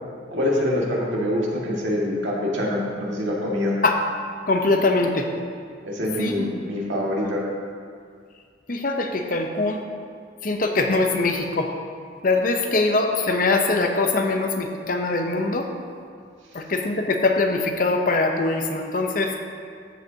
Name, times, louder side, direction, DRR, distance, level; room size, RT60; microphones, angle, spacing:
voice 1, 0.3-3.8 5.8-7.5, left 1 dB, 85° right, -4 dB, 2.0 m, -25 dB
voice 2, 4.5-5.3 6.2-6.5 8.7-9.8 10.4-11.7 12.2-15.7 16.5-19.3, left 3 dB, 45° left, 4 dB, 0.8 m, -22 dB
13.5 x 7.9 x 2.8 m, 2.2 s
head